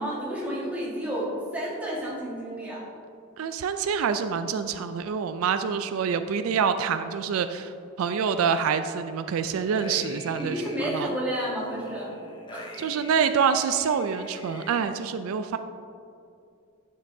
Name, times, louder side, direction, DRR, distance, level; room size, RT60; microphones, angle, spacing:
voice 1, 0.0-2.8 10.4-12.1 12.5-12.8, equal, 5° right, -7 dB, 1.6 m, -31 dB
voice 2, 3.4-7.7 8.0-11.1 12.8-15.6, right 6 dB, 75° right, 9 dB, 0.3 m, -26 dB
sound 1, 9.5-11.0 11.6-14.8, left 1 dB, 20° left, 0.6 m, -43 dB
10.0 x 6.6 x 2.7 m, 2.5 s
head